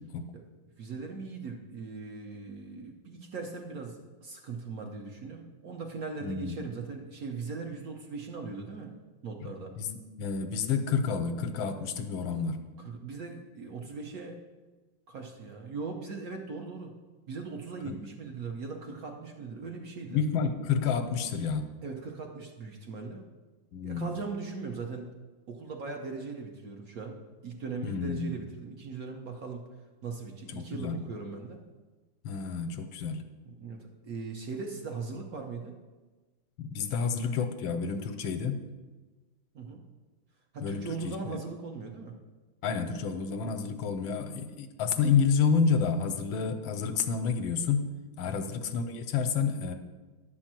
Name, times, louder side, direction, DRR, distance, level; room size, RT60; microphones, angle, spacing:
voice 1, 0.8-9.0 9.2-9.8 12.8-14.4 15.1-16.9 17.3-20.2 21.8-23.2 23.8-25.1 25.5-29.6 30.0-31.6 33.4-35.8 39.5-39.8 40.5-42.2, right 4 dB, 55° right, 2 dB, 1.1 m, -39 dB
voice 2, 6.2-6.6 9.8-12.6 17.9-18.0 20.1-21.7 23.7-24.1 27.8-28.3 30.5-31.0 32.2-33.2 36.6-38.6 40.6-41.4 42.6-49.7, left 6 dB, 80° left, 8 dB, 1.5 m, -29 dB
11.0 x 4.5 x 7.4 m, 1.3 s
omnidirectional pair, 2.2 m